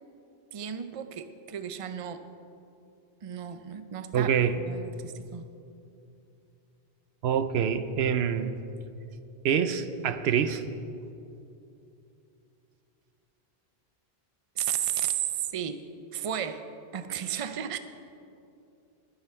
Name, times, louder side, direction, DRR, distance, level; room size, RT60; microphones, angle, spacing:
voice 1, 0.5-2.3 3.2-4.3 4.6-5.4 14.6-15.9 16.1-16.6 16.9-17.8, right 10 dB, 40° right, 10 dB, 0.6 m, -33 dB
voice 2, 4.1-4.6 7.2-8.5 9.4-10.6, right 8 dB, 85° right, 11 dB, 0.9 m, -25 dB
20.0 x 9.8 x 4.4 m, 2.7 s
omnidirectional pair, 1.0 m